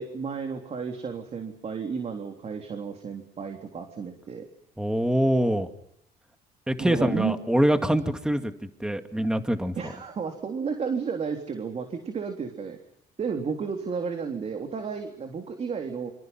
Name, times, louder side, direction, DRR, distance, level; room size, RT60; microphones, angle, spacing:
voice 1, 0.0-4.4 6.8-7.4 9.8-12.8 13.2-16.1, right 5 dB, 40° right, 5 dB, 3.5 m, -32 dB
voice 2, 4.8-5.7 6.7-8.5 8.8-9.9, equal, 5° right, 8 dB, 2.2 m, -24 dB
27.5 x 26.0 x 5.9 m, 0.72 s
cardioid pair, 110°, 17 cm